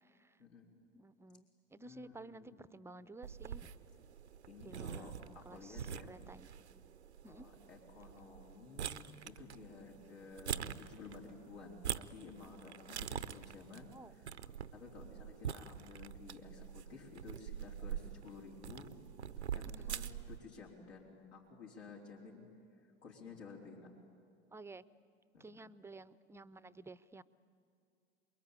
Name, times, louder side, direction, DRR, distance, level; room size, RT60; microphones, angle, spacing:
voice 1, 0.9-3.7 4.6-6.5 7.2-7.5 13.9-14.1 19.6-20.0 24.5-24.8 25.4-27.2, right 2 dB, 10° right, 17 dB, 0.6 m, -53 dB
voice 2, 1.8-2.6 4.5-6.1 7.2-18.9 19.5-22.5 22.8-23.9 25.3-25.7, left 4 dB, 80° left, -2 dB, 3.9 m, -53 dB
sound 1, 3.2-20.4, right 8 dB, 85° right, 0.7 m, -45 dB
28.0 x 22.0 x 8.9 m, 2.4 s
figure-of-eight pair, 80°, 33 cm